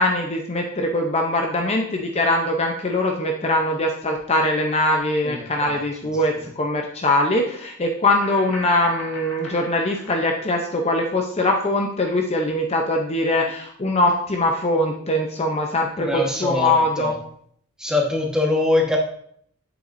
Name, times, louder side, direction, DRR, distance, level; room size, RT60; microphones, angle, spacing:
voice 1, 0.0-17.1, left 1 dB, 30° left, 2 dB, 0.6 m, -22 dB
voice 2, 5.2-5.8 6.3-6.5 16.0-17.1 17.8-19.0, left 2 dB, 5° right, 0 dB, 1.2 m, -23 dB
sound 1, 8.2-11.1, left 1 dB, 75° left, 2.1 m, -38 dB
8.1 x 7.8 x 2.6 m, 0.64 s
head